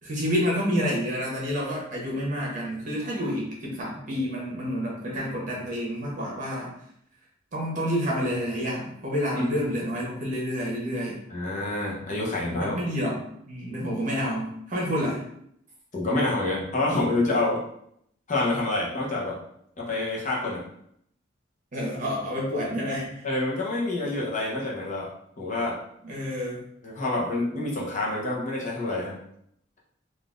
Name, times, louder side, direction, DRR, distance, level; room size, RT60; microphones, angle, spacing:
voice 1, 0.0-6.7 7.5-11.2 12.5-15.2 21.7-23.2 26.0-26.6, equal, 40° right, -3 dB, 1.0 m, -29 dB
voice 2, 11.3-12.8 15.9-17.6 18.3-19.4 19.8-20.6 23.2-25.1 25.4-25.8 26.8-29.2, left 2 dB, 40° left, -4 dB, 0.7 m, -27 dB
3.7 x 2.5 x 2.4 m, 0.72 s
head